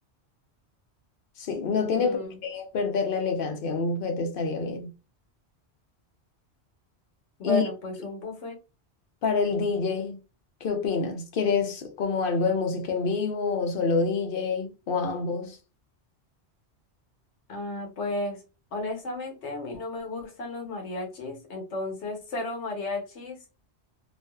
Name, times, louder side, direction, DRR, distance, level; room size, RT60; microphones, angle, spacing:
voice 1, 1.4-4.9 7.4-7.6 9.2-10.2 10.6-15.6, left 4 dB, 60° left, 0.7 m, -27 dB
voice 2, 2.0-2.4 7.4-8.6 17.5-18.4 18.7-23.4, left 2 dB, 80° left, 1.1 m, -33 dB
2.4 x 2.4 x 2.2 m
omnidirectional pair, 1.2 m